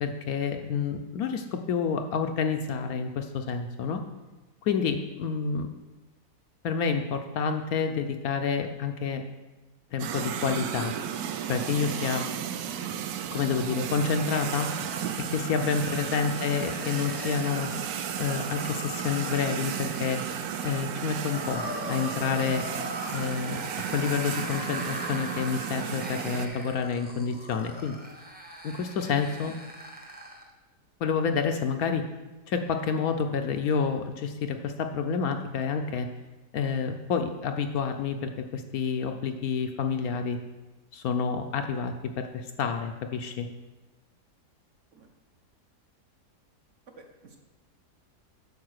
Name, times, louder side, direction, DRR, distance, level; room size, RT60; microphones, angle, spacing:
voice 1, 0.0-4.0 4.6-5.7 6.6-9.2 9.9-10.9 11.5-12.2 13.3-14.7 15.3-17.7 18.2-20.2 20.6-21.6 21.9-22.6 23.1-23.6 23.9-27.9 28.6-29.6 31.0-32.0 32.5-36.1 36.5-40.4 40.9-43.5, left 6 dB, 70° left, 6 dB, 1.1 m, -29 dB
sound 1, 10.0-26.5, right 9 dB, 70° right, 1.0 m, -34 dB
sound 2, 13.9-30.5, equal, 10° right, 0.7 m, -41 dB
voice 2, 47.0-47.4, right 4 dB, 50° right, 3 dB, 1.2 m, -50 dB
8.6 x 5.1 x 6.5 m, 1.1 s
omnidirectional pair, 1.8 m